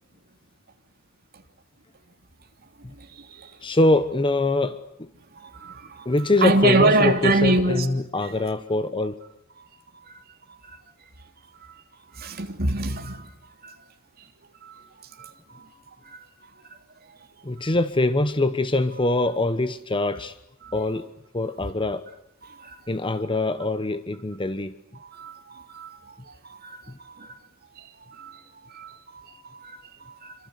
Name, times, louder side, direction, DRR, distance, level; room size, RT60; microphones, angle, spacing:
voice 1, 3.6-5.1 6.0-9.2 17.4-20.4 20.7-21.1 21.3-22.0 22.9-24.7, left 2 dB, 25° left, 1.1 m, -23 dB
voice 2, 5.4-6.1 6.4-7.9 12.2-13.2 13.6-13.7 14.6-14.7 15.2-15.7 20.6-20.7 22.4-22.7 25.0-25.9 26.4-27.3 28.1-28.3 28.7-30.3, right 2 dB, 50° right, 3.1 m, -25 dB
27.5 x 26.0 x 8.2 m
head